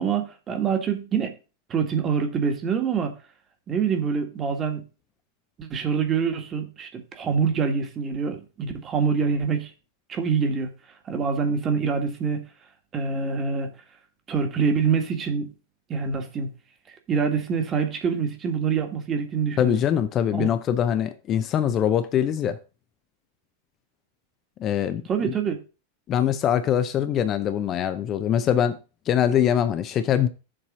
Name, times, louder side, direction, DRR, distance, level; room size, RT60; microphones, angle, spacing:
voice 1, 0.0-1.4 1.7-3.1 3.7-4.8 5.6-9.7 10.1-10.7 11.1-12.5 12.9-13.7 14.3-15.5 15.9-16.5 17.1-19.7 20.3-20.5 25.1-25.6, right 6 dB, 25° right, 1.7 m, -25 dB
voice 2, 19.6-22.6 24.6-25.0 26.1-28.8 29.1-30.3, left 9 dB, 30° left, 0.7 m, -23 dB
7.6 x 4.1 x 6.1 m
figure-of-eight pair, 90°, 0 cm